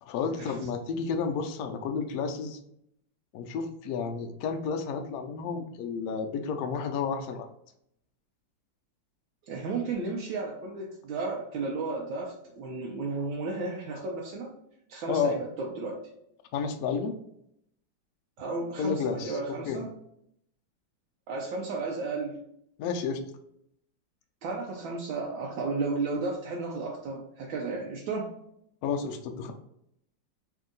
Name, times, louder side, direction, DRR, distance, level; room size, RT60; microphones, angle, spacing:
voice 1, 0.0-2.6 3.3-7.5 15.1-15.4 16.5-17.1 18.8-19.4 19.7-19.8 22.8-23.2 28.8-29.5, left 6 dB, 80° left, 4 dB, 0.8 m, -31 dB
voice 2, 9.5-14.5 14.9-16.0 18.4-19.9 21.3-22.4 24.4-28.3, right 3 dB, 85° right, -2 dB, 1.4 m, -33 dB
3.5 x 2.7 x 3.7 m, 0.74 s
omnidirectional pair, 2.1 m